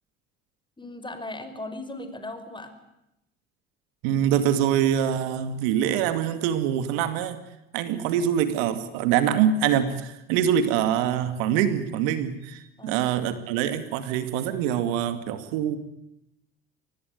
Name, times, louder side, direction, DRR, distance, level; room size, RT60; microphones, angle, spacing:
voice 1, 0.8-2.7 12.8-13.1, left 2 dB, 15° left, 9 dB, 5.4 m, -37 dB
voice 2, 4.0-7.4 7.7-15.8, right 9 dB, 70° right, 11 dB, 2.4 m, -24 dB
25.0 x 19.5 x 9.5 m, 0.85 s
hypercardioid pair, 60°, 31 cm